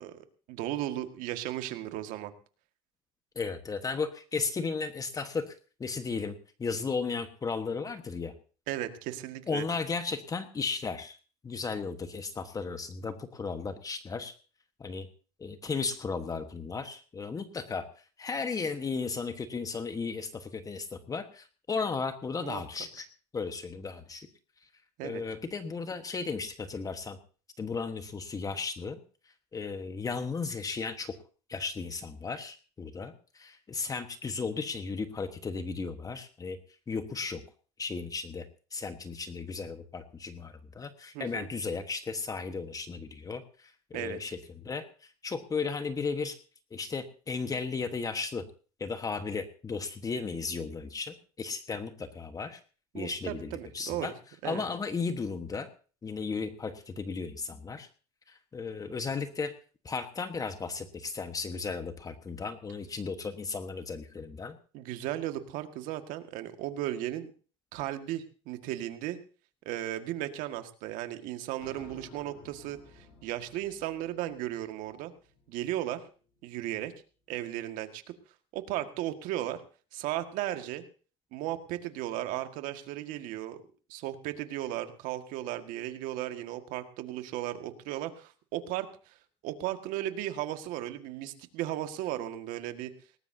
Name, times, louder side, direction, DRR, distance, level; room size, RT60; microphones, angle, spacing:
voice 1, 0.0-2.3 8.7-9.7 22.4-22.6 25.0-25.2 41.1-41.5 43.9-44.2 52.9-54.1 54.4-54.6 64.7-67.3 67.7-69.2 69.7-75.1 75.5-76.0 76.4-76.9 77.3-78.0 78.5-79.6 79.9-80.8 81.3-83.6 83.9-89.2 89.4-92.9, right 13 dB, 70° right, 8 dB, 1.8 m, -35 dB
voice 2, 3.3-8.3 9.5-11.2 11.4-14.3 14.8-15.1 15.4-17.8 18.2-23.1 23.3-24.3 25.0-27.2 27.6-29.0 29.5-31.1 31.5-36.6 36.9-37.4 37.8-38.4 38.7-46.4 46.7-48.4 48.8-52.6 52.9-54.1 54.4-55.7 56.0-57.9 58.3-59.5 59.8-64.6, left 4 dB, 25° left, 9 dB, 1.3 m, -35 dB
sound 1, 71.6-76.0, left 4 dB, 65° left, 5.9 m, -55 dB
18.5 x 18.5 x 2.8 m, 0.37 s
supercardioid pair, 105°, 14 cm